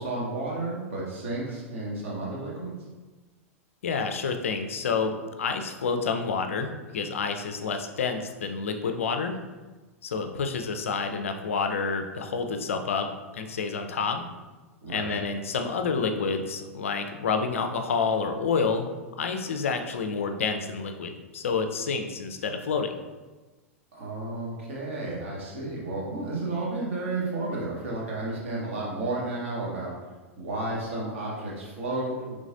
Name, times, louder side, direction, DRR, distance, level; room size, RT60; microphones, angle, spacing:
voice 1, 0.0-2.7 14.8-15.2 23.9-29.9 30.4-32.3, right 2 dB, 60° right, -4 dB, 1.2 m, -32 dB
voice 2, 3.8-9.4 10.0-14.3 14.9-18.9 19.2-22.9, left 5 dB, 65° left, 6 dB, 0.4 m, -29 dB
3.9 x 3.3 x 2.5 m, 1.2 s
figure-of-eight pair, 90°, 8 cm